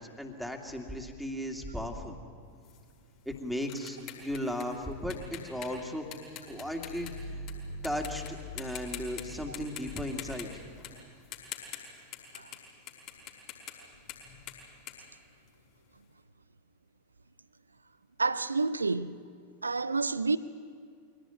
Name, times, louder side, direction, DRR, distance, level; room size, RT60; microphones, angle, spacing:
voice 1, 0.0-2.2 3.3-6.0 6.5-7.3 7.8-10.5, equal, ahead, 2.5 m, -36 dB
sound 1, 2.6-7.5 7.8-8.3 8.6-9.2 9.5-12.6 12.9-15.9, left 10 dB, 40° left, 5.3 m, -45 dB
sound 2, 6.3-11.0, left 1 dB, 65° left, 2.8 m, -44 dB
voice 2, 18.2-19.1 19.6-20.4, right 3 dB, 80° right, 0.5 m, -29 dB
24.0 x 17.5 x 9.2 m
figure-of-eight pair, 90°, 0 cm